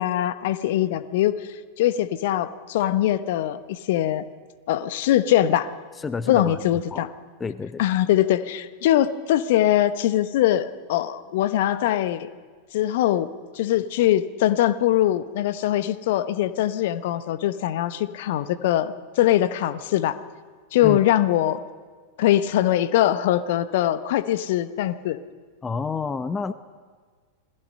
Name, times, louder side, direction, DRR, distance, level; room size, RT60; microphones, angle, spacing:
voice 1, 0.0-1.5 1.8-4.2 4.7-5.7 6.3-7.1 7.8-12.3 12.7-13.3 13.5-20.2 20.7-21.6 22.2-25.2, left 12 dB, 50° left, 13 dB, 1.1 m, -22 dB
voice 2, 6.0-7.1 7.4-7.8 20.8-21.0 25.6-26.5, left 5 dB, 15° left, 13 dB, 0.8 m, -29 dB
28.0 x 21.0 x 5.5 m, 1.5 s
figure-of-eight pair, 90°, 0 cm